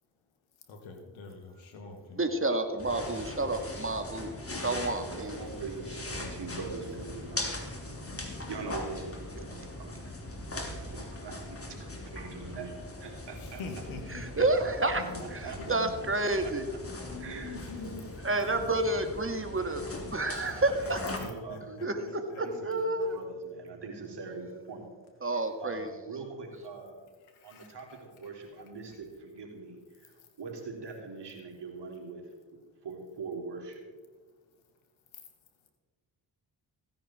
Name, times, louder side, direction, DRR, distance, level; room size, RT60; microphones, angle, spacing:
voice 1, 0.7-2.2 13.4-14.5 14.9-15.3 15.6-16.0 17.0-18.1 18.5-18.6 21.2-21.9 22.3-22.4 27.4-28.0, left 4 dB, 90° left, 4 dB, 2.0 m, -44 dB
voice 2, 2.2-5.4 14.1-15.0 15.3-16.6 18.2-19.9 20.1-21.1 21.8-23.2 25.2-25.9, right 2 dB, 25° right, 6 dB, 2.2 m, -30 dB
sound 1, 2.8-21.2, left 2 dB, 30° left, 3.1 m, -40 dB
voice 3, 4.8-10.0 10.6-13.6 15.2-15.6 16.4-16.5 17.2-18.1 19.8-19.9 20.8-24.9 25.3-27.0 27.4-32.3 32.8-33.8, right 4 dB, 60° right, 0 dB, 3.7 m, -43 dB
16.0 x 10.0 x 4.5 m, 1.4 s
supercardioid pair, 45°, 46 cm